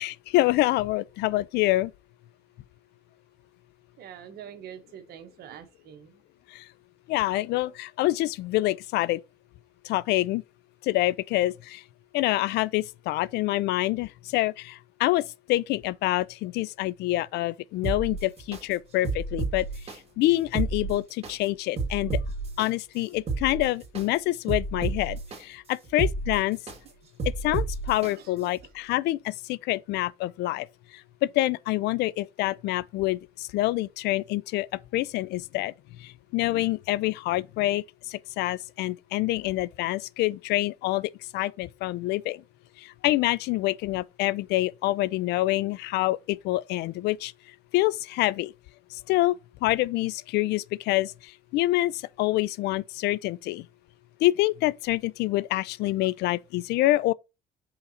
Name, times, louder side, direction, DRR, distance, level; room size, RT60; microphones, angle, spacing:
voice 1, 0.0-1.9 6.5-6.6 7.1-9.2 9.9-10.4 10.8-11.8 12.1-19.7 20.2-22.2 22.6-26.6 27.4-30.7 31.2-34.7 34.9-35.7 36.0-42.4 42.8-47.3 47.7-48.5 48.9-49.4 49.6-51.1 51.5-51.9 52.2-53.6 54.2-57.1, left 17 dB, 80° left, 0.4 m, -26 dB
voice 2, 4.0-6.2 28.2-28.3 28.6-28.7, right 9 dB, 70° right, 1.3 m, -45 dB
sound 1, 17.8-18.6 19.0-20.0 20.4-21.3 21.8-22.7 23.1-24.0 24.5-25.4 25.8-26.8 27.2-28.1 28.6-28.7, right 3 dB, 35° right, 2.1 m, -31 dB
5.7 x 3.9 x 4.2 m
cardioid pair, 110°, 17 cm